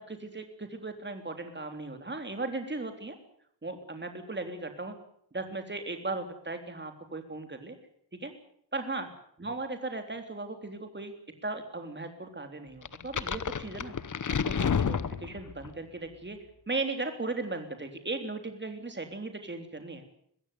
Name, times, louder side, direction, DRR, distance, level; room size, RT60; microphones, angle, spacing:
voice 1, 0.0-3.2 3.6-5.0 5.3-7.8 8.2-8.3 8.7-9.1 9.4-11.1 11.4-13.9 14.4-16.4 16.7-20.0, right 3 dB, 25° right, 6 dB, 3.6 m, -37 dB
sound 1, 12.9-15.7, left 6 dB, 50° left, 1.0 m, -30 dB
22.5 x 16.0 x 9.5 m, 0.67 s
wide cardioid pair, 125°, 40 cm